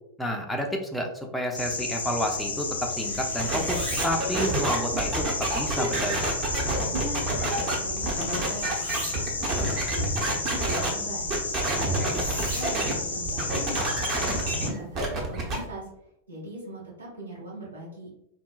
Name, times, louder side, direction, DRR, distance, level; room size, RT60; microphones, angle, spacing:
voice 1, 0.2-5.3 5.5-6.3 12.0-12.2, equal, ahead, 1 dB, 0.4 m, -30 dB
sound 1, 1.5-14.7, left 3 dB, 75° left, 0.4 m, -32 dB
sound 2, 2.2-15.6, right 2 dB, 55° right, 1.5 m, -44 dB
sound 3, 3.4-10.9 11.3-12.9 13.3-15.6, right 2 dB, 35° right, 0.7 m, -28 dB
voice 2, 6.7-11.3 11.7-15.8 16.3-18.1, right 2 dB, 80° right, -6 dB, 1.4 m, -40 dB
3.8 x 2.1 x 2.3 m, 0.81 s
figure-of-eight pair, 90°, 0 cm